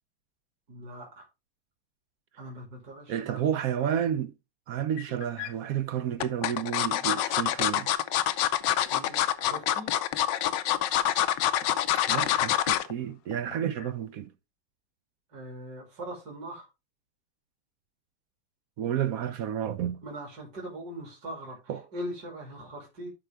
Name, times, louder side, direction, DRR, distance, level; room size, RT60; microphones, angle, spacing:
voice 1, 0.7-1.2 2.4-3.4 8.9-9.9 15.3-16.7 20.0-21.6 21.9-23.1, right 1 dB, 55° right, 3.1 m, -41 dB
voice 2, 3.1-4.3 4.7-7.9 12.1-14.3 18.8-20.0 21.7-21.8, right 9 dB, 70° right, 0.8 m, -31 dB
sound 1, 5.0-5.5 6.2-12.9 13.3-13.5 13.8-13.9, left 11 dB, 80° left, 1.3 m, -26 dB
12.5 x 4.7 x 3.4 m
omnidirectional pair, 2.0 m